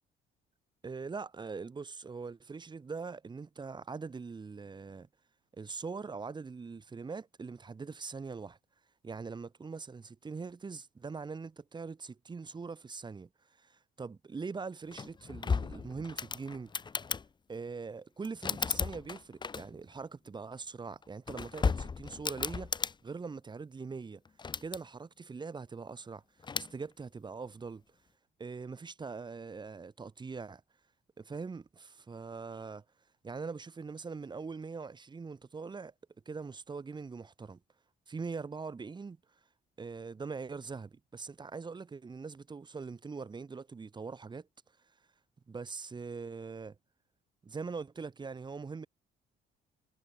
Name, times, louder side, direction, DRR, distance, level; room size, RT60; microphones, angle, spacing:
voice 1, 0.8-5.1 5.5-8.6 9.0-16.7 17.5-24.2 24.6-26.2 26.5-27.8 28.4-30.6 31.2-32.8 33.2-35.9 36.3-37.6 38.1-39.2 39.8-44.5 45.5-46.8 47.4-48.9, right 4 dB, 25° right, 5.6 m, -42 dB
sound 1, 14.9-17.3 18.2-19.9 21.0-22.9 24.2-24.8 26.4-26.7, left 5 dB, 25° left, 1.7 m, -35 dB
cardioid pair, 145°, 19 cm